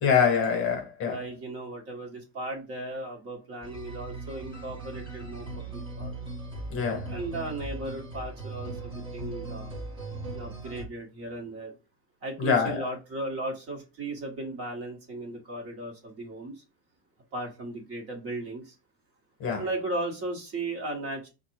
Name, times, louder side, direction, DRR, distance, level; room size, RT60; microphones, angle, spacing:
voice 1, 0.0-1.2 6.7-7.1 12.4-12.8 19.4-19.6, left 6 dB, 30° left, 1.3 m, -24 dB
voice 2, 1.0-6.1 7.1-9.7 10.3-11.8 12.2-16.6 17.3-18.7 19.6-21.3, right 2 dB, 30° right, 1.4 m, -36 dB
sound 1, 3.6-10.8, right 2 dB, 10° right, 0.9 m, -38 dB
4.0 x 2.6 x 4.5 m
supercardioid pair, 140°, 46 cm